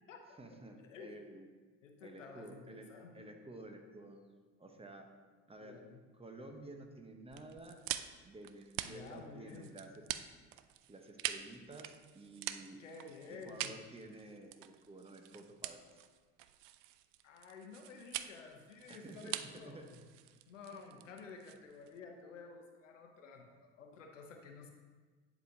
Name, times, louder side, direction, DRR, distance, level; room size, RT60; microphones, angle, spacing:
voice 1, 0.4-1.5 2.0-4.2 4.6-5.1 5.5-5.8 6.2-7.8 8.2-10.0 10.9-12.8 13.3-15.8 18.9-19.9 20.7-21.0 21.9-22.0 23.4-23.7, right 2 dB, 15° right, 4 dB, 1.0 m, -52 dB
voice 2, 1.8-3.3 5.6-6.0 8.8-9.7 12.8-13.8 17.2-20.0 20.5-24.7, left 4 dB, 90° left, 3 dB, 0.8 m, -52 dB
sound 1, 7.3-22.0, right 13 dB, 60° right, 0.5 m, -45 dB
11.0 x 4.9 x 2.7 m, 1.4 s
hypercardioid pair, 65°, 36 cm